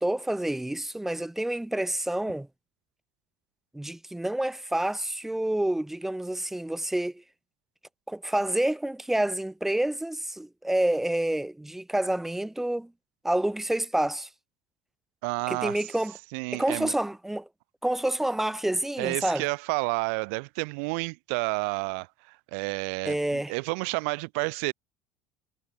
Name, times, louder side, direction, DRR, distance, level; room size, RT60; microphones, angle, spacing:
voice 1, 0.0-2.5 3.7-7.2 8.1-12.9 13.2-14.3 15.5-16.1 16.5-17.5 17.8-19.4 23.0-23.5, right 1 dB, 5° right, 1.0 m, -28 dB
voice 2, 15.2-15.8 16.3-16.9 19.0-24.7, right 34 dB, 90° right, 3.7 m, -30 dB
cardioid pair, 145°, 7 cm